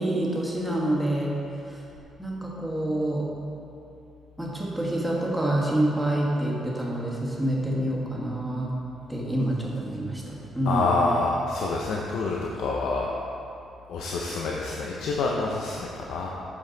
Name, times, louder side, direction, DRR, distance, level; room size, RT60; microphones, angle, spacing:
voice 1, 0.0-1.4 1.7-1.8 2.2-3.3 4.4-8.8 9.1-10.9, right 1 dB, 5° right, -4 dB, 1.4 m, -27 dB
voice 2, 10.7-13.1 13.9-16.3, left 3 dB, 80° left, -2 dB, 0.6 m, -27 dB
7.9 x 5.2 x 3.9 m, 2.8 s
cardioid pair, 90°, 0 cm